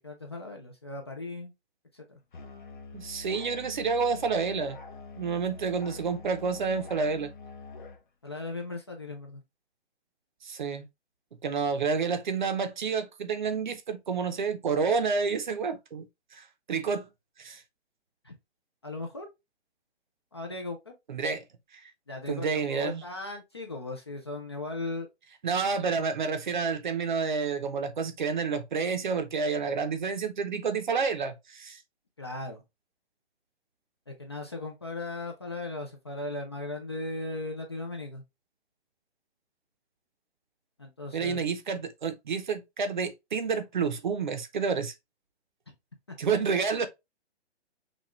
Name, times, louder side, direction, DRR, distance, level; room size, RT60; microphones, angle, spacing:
voice 1, 0.0-1.5 1.9-2.2 8.2-9.4 18.2-18.3 18.8-19.3 20.3-20.9 22.1-25.1 32.2-32.6 34.1-38.2 40.8-41.4 46.1-46.2, left 2 dB, 25° left, 0.5 m, -37 dB
Musical instrument, 2.3-8.0, left 4 dB, 45° left, 1.1 m, -45 dB
voice 2, 2.9-4.8 5.2-7.3 10.4-10.8 11.4-16.1 16.3-17.1 17.4-17.6 21.1-21.4 22.3-23.0 25.4-31.8 41.1-44.9 46.2-46.9, right 5 dB, 45° right, 0.7 m, -29 dB
6.0 x 2.4 x 3.0 m
hypercardioid pair, 170°, 33 cm